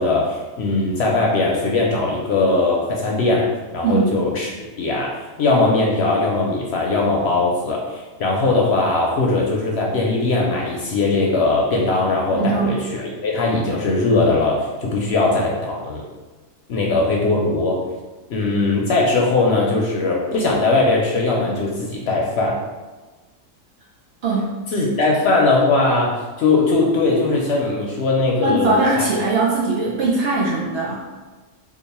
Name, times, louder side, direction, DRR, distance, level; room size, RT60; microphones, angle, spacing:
voice 1, 0.0-16.0 16.7-17.8 18.3-22.6 24.7-29.0, left 3 dB, 65° left, -2 dB, 0.7 m, -20 dB
voice 2, 3.8-4.1 12.3-12.8 24.2-24.6 28.4-31.0, right 3 dB, 65° right, -3 dB, 0.6 m, -20 dB
3.0 x 2.4 x 4.0 m, 1.2 s
omnidirectional pair, 1.4 m